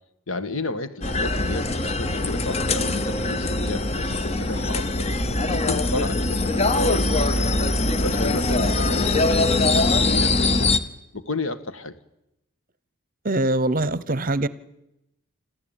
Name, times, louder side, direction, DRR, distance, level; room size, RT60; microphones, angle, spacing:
voice 1, 0.3-5.1 5.5-7.5 8.0-10.7 11.1-11.9, left 2 dB, 65° left, 1.6 m, -31 dB
sound 1, 1.0-10.8, left 2 dB, 30° left, 0.9 m, -22 dB
voice 2, 13.2-14.5, right 2 dB, 40° right, 0.8 m, -23 dB
26.5 x 14.5 x 9.0 m
head